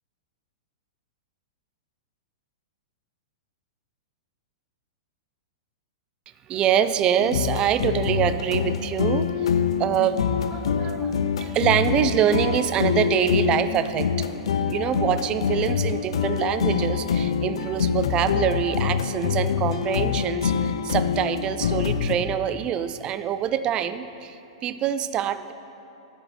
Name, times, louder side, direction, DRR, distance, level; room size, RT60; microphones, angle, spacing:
voice 1, 6.5-10.2 10.5-14.3 14.7-25.5, right 9 dB, 30° right, 12 dB, 0.4 m, -25 dB
sound 1, 7.2-22.2, left 7 dB, 75° left, 0.5 m, -25 dB
9.3 x 6.8 x 4.3 m, 3.0 s
hypercardioid pair, 115°, 3 cm